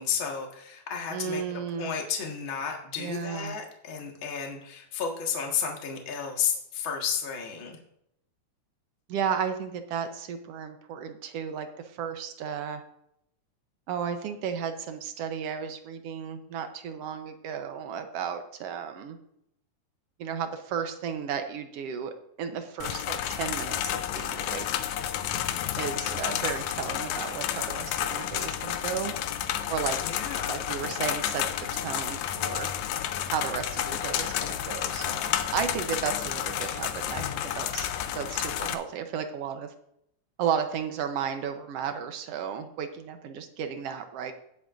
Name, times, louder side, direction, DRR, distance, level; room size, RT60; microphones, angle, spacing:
voice 1, 0.0-1.4 1.8-7.8 30.0-30.7, left 7 dB, 45° left, 1 dB, 2.1 m, -32 dB
voice 2, 1.1-1.9 3.0-3.6 9.1-11.7 12.0-12.8 13.9-19.2 20.2-24.7 25.8-29.1 29.7-30.0 30.5-31.4 31.7-32.7 33.3-37.9 38.1-39.7 40.4-44.3, right 7 dB, 70° right, 7 dB, 1.6 m, -34 dB
sound 1, 22.8-38.7, left 10 dB, 75° left, 1.8 m, -31 dB
18.0 x 7.7 x 2.6 m, 0.75 s
omnidirectional pair, 3.6 m